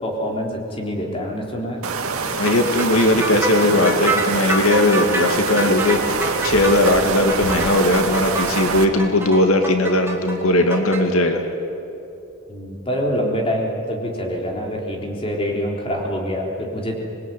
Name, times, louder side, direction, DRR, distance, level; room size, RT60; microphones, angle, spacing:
voice 1, 0.0-1.8 12.5-17.0, equal, 25° left, 0 dB, 3.9 m, -25 dB
sound 1, 1.8-8.8, right 4 dB, 85° right, 1.9 m, -25 dB
voice 2, 2.3-11.4, left 1 dB, 80° left, 5 dB, 2.2 m, -18 dB
sound 2, 2.5-11.0, right 2 dB, 10° right, 2.6 m, -27 dB
25.5 x 21.5 x 9.3 m, 2.8 s
head